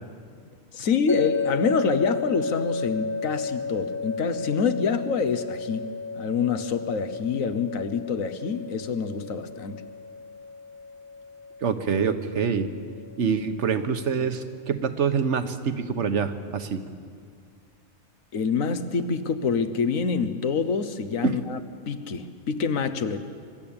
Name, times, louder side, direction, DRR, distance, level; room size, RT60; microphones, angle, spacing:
voice 1, 0.7-5.8 6.1-9.8 18.3-21.6 21.9-23.2, left 5 dB, 90° left, 10 dB, 1.5 m, -26 dB
sound 1, 1.1-14.2, left 4 dB, 15° left, 0.7 m, -34 dB
voice 2, 11.6-12.7 13.2-16.8 21.2-21.4, right 6 dB, 65° right, 9 dB, 1.3 m, -25 dB
24.5 x 12.5 x 8.7 m, 2.2 s
omnidirectional pair, 1.3 m